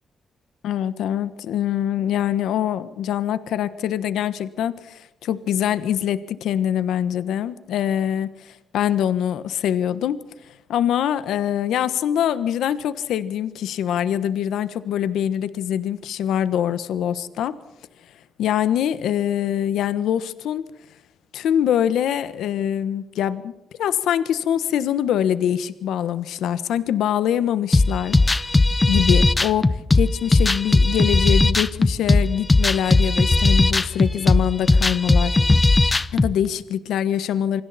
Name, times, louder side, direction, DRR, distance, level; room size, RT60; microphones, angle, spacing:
voice 1, 0.6-10.2 10.7-17.6 18.4-20.6 21.3-23.5 23.8-28.2 28.9-35.4 36.1-37.6, left 10 dB, 85° left, 13 dB, 1.3 m, -24 dB
sound 1, 27.7-36.3, left 2 dB, 20° left, 0.9 m, -18 dB
27.5 x 25.0 x 4.3 m, 0.93 s
cardioid pair, 130°, 0 cm